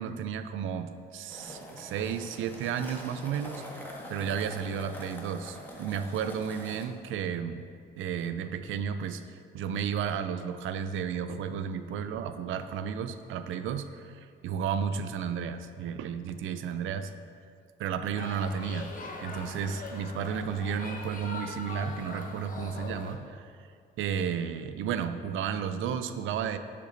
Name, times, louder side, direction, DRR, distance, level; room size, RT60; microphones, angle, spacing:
voice 1, 0.0-7.6 8.0-17.1 17.8-18.9 19.2-23.7 24.0-26.6, right 7 dB, 80° right, 10 dB, 0.5 m, -33 dB
sound 1, 1.3-6.9, left 1 dB, 10° left, 1.2 m, -44 dB
sound 2, 18.2-23.1, left 3 dB, 45° left, 1.0 m, -41 dB
6.8 x 5.2 x 5.2 m, 2.2 s
cardioid pair, 90°, 20 cm